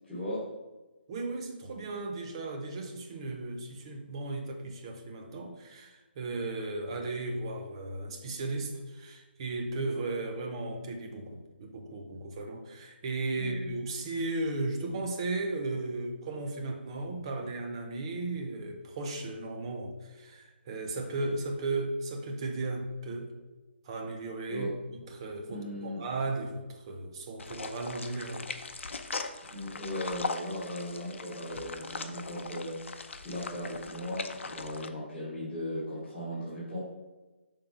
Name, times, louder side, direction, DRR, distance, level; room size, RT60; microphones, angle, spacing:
voice 1, 0.1-0.4 13.4-13.7 24.5-24.7 25.5-26.0 29.5-32.8 33.2-36.8, equal, ahead, -21 dB, 2.4 m, -37 dB
voice 2, 1.1-23.3 23.8-24.7 25.0-28.5, right 2 dB, 25° right, 3 dB, 0.8 m, -35 dB
sound 1, 27.4-34.9, left 4 dB, 85° left, 0.6 m, -40 dB
6.8 x 3.8 x 5.3 m, 1.2 s
hypercardioid pair, 170°, 6 cm